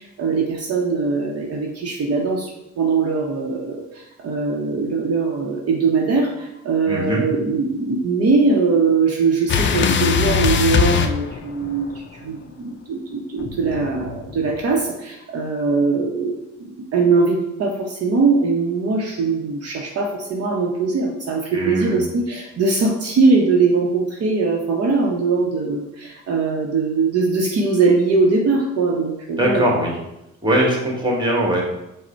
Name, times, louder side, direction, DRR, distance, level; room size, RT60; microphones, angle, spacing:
voice 1, 0.0-29.7, right 4 dB, 55° right, -1 dB, 0.7 m, -21 dB
voice 2, 6.9-7.2 21.5-22.1 29.4-29.9 30.4-31.6, right 1 dB, 15° right, -2 dB, 1.3 m, -20 dB
sound 1, 9.5-12.0 13.4-14.7, left 7 dB, 40° left, 0.4 m, -21 dB
5.0 x 2.1 x 4.3 m, 0.89 s
cardioid pair, 90°, 30 cm